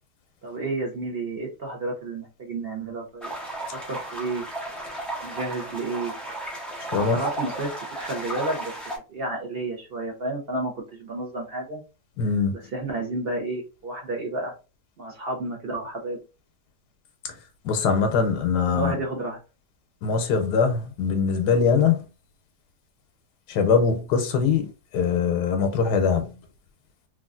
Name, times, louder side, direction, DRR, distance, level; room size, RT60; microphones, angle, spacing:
voice 1, 0.4-3.3 3.9-4.4 5.2-6.1 6.9-8.7 9.1-11.8 12.5-14.5 15.0-16.2 18.7-19.4, right 2 dB, 50° right, 0.7 m, -31 dB
sound 1, 3.2-9.0, right 2 dB, ahead, 0.5 m, -34 dB
voice 2, 12.2-12.5 17.6-18.9 20.0-22.0 23.5-24.7 24.9-26.3, left 5 dB, 90° left, 1.2 m, -22 dB
3.3 x 2.4 x 2.4 m
omnidirectional pair, 1.7 m